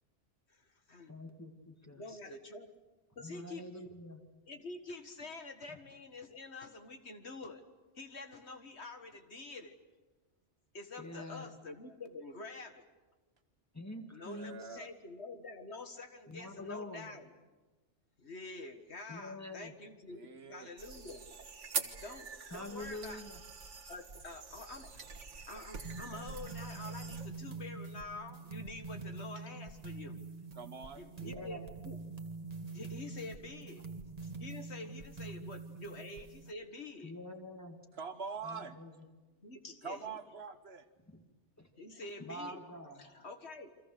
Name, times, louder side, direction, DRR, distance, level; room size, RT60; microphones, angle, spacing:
voice 1, 0.5-1.3 1.9-2.7 3.2-3.7 4.5-7.6 8.0-9.7 10.7-12.9 14.1-17.3 18.2-21.3 22.0-23.2 23.9-25.0 25.5-30.2 31.0-32.0 32.7-33.8 34.2-37.1 39.4-40.2 41.8-43.8, left 2 dB, 65° left, 7 dB, 2.0 m, -47 dB
voice 2, 1.1-2.2 3.2-4.2 11.0-11.5 13.7-14.8 16.3-17.2 19.1-19.7 22.5-23.4 31.2-31.7 37.0-37.8 38.4-39.1 41.1-41.2 41.6-41.7 42.2-43.1, left 1 dB, 15° left, 4 dB, 2.1 m, -46 dB
voice 3, 14.2-14.9 20.1-20.7 30.6-31.0 37.9-38.8 39.8-40.9, right 5 dB, 60° right, 10 dB, 1.3 m, -44 dB
sound 1, 20.8-27.3, right 5 dB, 80° right, 1.8 m, -44 dB
sound 2, 25.8-36.5, right 3 dB, 35° right, 1.7 m, -45 dB
29.0 x 24.5 x 6.6 m, 1.2 s
omnidirectional pair, 1.2 m